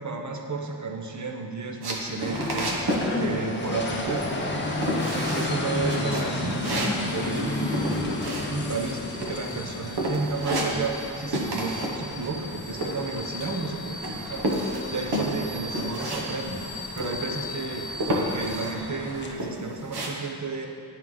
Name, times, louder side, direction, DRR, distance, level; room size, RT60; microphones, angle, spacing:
voice 1, 0.0-2.7 3.2-4.3 4.7-20.7, right 3 dB, 45° right, 3 dB, 0.7 m, -33 dB
sound 1, 1.8-3.1 3.4-3.8 4.1-4.6 4.8-5.5 5.9-8.9 9.2-9.7 10.0-11.1 11.3-12.0 12.2-13.7 14.0-16.3 16.5-16.7 17.0-17.5 18.0-18.7 19.2-20.1, right 1 dB, 65° right, 1.0 m, -30 dB
sound 2, 2.2-19.3, left 2 dB, 25° left, 0.7 m, -33 dB
sound 3, 6.9-18.7, left 2 dB, 5° left, 1.1 m, -40 dB
9.3 x 4.6 x 3.7 m, 2.5 s
wide cardioid pair, 95°, 41 cm